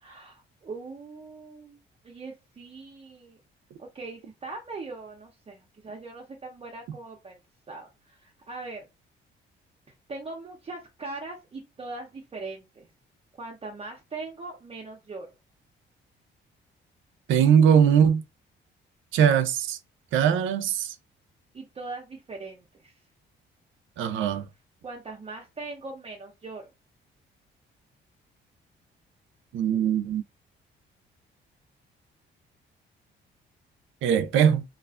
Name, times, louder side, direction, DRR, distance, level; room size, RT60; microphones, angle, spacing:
voice 1, 0.0-1.8 2.0-3.4 3.8-7.4 7.7-8.9 10.1-12.9 13.4-15.3 21.5-22.9 24.8-26.6, right 3 dB, 30° right, 0.6 m, -40 dB
voice 2, 17.3-18.2 19.1-19.8 20.1-20.9 24.0-24.4 29.5-30.2 34.0-34.6, right 8 dB, 80° right, 0.5 m, -21 dB
2.4 x 2.3 x 2.4 m
cardioid pair, 90°, 20 cm